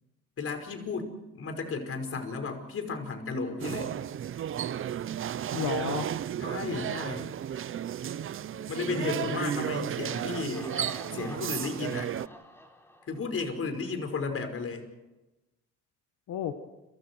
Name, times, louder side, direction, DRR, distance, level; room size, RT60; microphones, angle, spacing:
voice 1, 0.4-1.1 1.3-3.9 6.4-7.3 8.7-12.1 13.1-14.8, left 4 dB, 50° left, 6 dB, 5.4 m, -34 dB
sound 1, 3.6-12.3, right 10 dB, 45° right, 0.7 m, -33 dB
voice 2, 5.5-6.2 8.9-9.9 16.3-16.5, left 10 dB, 80° left, 6 dB, 1.6 m, -34 dB
Laughter, 10.1-13.9, equal, 10° left, 4.3 m, -48 dB
30.0 x 24.5 x 4.7 m, 1.0 s
cardioid pair, 105°, 30 cm